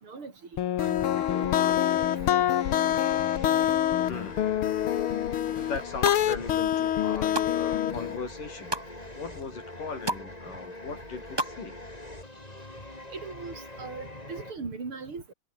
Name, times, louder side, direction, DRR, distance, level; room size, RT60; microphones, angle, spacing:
voice 1, 0.0-0.3 0.8-2.0 7.9-8.0 13.1-15.3, right 4 dB, 40° right, 4.8 m, -40 dB
sound 1, 0.6-8.2, left 11 dB, 65° left, 1.4 m, -26 dB
sound 2, 0.8-14.5, left 1 dB, 10° left, 4.1 m, -43 dB
voice 2, 4.1-4.4 5.6-8.7 9.2-11.8, left 4 dB, 90° left, 7.3 m, -38 dB
sound 3, 5.8-6.2 6.8-7.5 7.9-8.9 9.4-9.5 9.7-10.3 10.6-11.5 11.8-11.9, right 1 dB, 5° right, 3.4 m, -33 dB
omnidirectional pair, 3.7 m